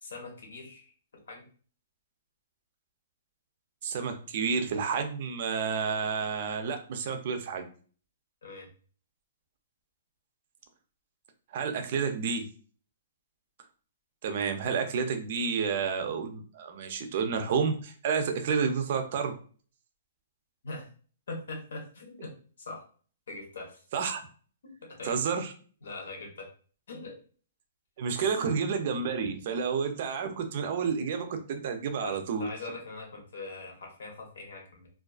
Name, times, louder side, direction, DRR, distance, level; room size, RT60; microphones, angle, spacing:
voice 1, 0.0-1.4 8.4-8.7 20.6-20.9 21.3-22.3 22.6-22.8 23.3-23.8 24.6-25.1 25.8-26.5 26.9-27.2 28.4-28.5 32.0-34.9, left 3 dB, 80° left, 1 dB, 0.9 m, -42 dB
voice 2, 3.8-7.7 11.5-12.4 14.2-19.4 23.9-24.2 25.0-25.5 28.0-32.5, right 6 dB, 45° right, 6 dB, 0.4 m, -30 dB
2.3 x 2.3 x 2.3 m, 0.42 s
hypercardioid pair, 165°, 0 cm